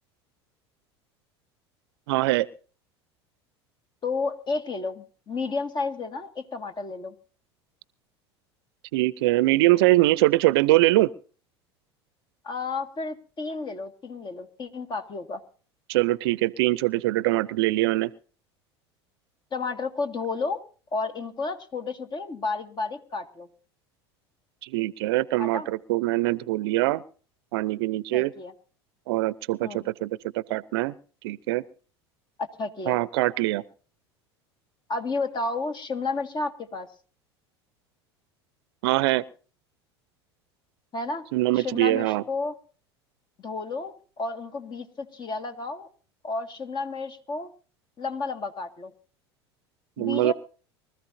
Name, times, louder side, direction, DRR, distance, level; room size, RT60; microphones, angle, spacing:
voice 1, 2.1-2.5 8.9-11.1 15.9-18.1 24.6-27.0 27.5-28.3 29.1-30.9 31.2-31.6 32.9-33.6 38.8-39.2 41.3-42.2 50.0-50.3, right 18 dB, 65° right, 20 dB, 0.6 m, -23 dB
voice 2, 4.0-7.2 12.4-15.4 19.5-20.6 20.9-23.5 25.4-25.7 28.1-28.5 29.6-29.9 32.4-33.0 34.9-36.9 40.9-41.2 41.5-42.5 43.4-45.9 46.2-47.5 48.0-48.9 50.0-50.3, left 3 dB, 30° left, 8 dB, 1.9 m, -31 dB
24.0 x 14.0 x 2.7 m, 0.39 s
hypercardioid pair, 75°, 14 cm